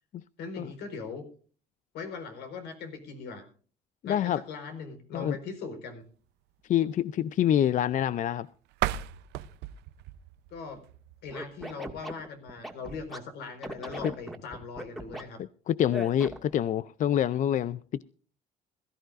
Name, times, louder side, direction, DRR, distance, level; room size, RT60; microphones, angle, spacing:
voice 1, 0.4-1.2 1.9-3.5 4.0-6.0 10.5-10.8 11.2-15.4, left 4 dB, 80° left, 4.6 m, -40 dB
voice 2, 4.0-4.4 5.1-5.4 6.7-8.5 14.0-14.1 15.7-18.0, left 10 dB, 50° left, 0.5 m, -26 dB
sound 1, 8.7-11.6, right 13 dB, 85° right, 0.7 m, -36 dB
Scratching (performance technique), 11.3-13.2 13.6-15.2 15.9-16.6, right 1 dB, ahead, 2.1 m, -39 dB
21.0 x 14.0 x 2.6 m
cardioid pair, 110°, 17 cm